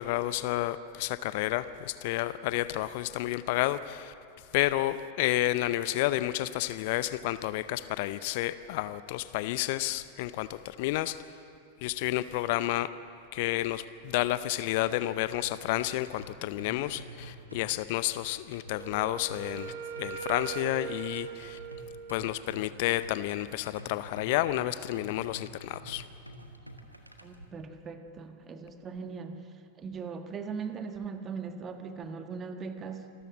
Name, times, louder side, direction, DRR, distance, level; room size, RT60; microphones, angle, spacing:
voice 1, 0.0-4.1 4.5-11.2 11.8-12.9 13.3-19.7 20.0-21.6 22.1-26.0, left 15 dB, 50° left, 15 dB, 0.6 m, -30 dB
sound 1, 15.4-27.4, right 1 dB, 85° right, 1.5 m, -49 dB
Wind instrument woodwind instrument, 18.7-22.5, right 9 dB, 55° right, 1.2 m, -40 dB
voice 2, 27.2-29.5 29.8-33.1, right 5 dB, 25° right, 7 dB, 1.5 m, -39 dB
27.0 x 13.5 x 7.4 m, 2.5 s
figure-of-eight pair, 90°, 0 cm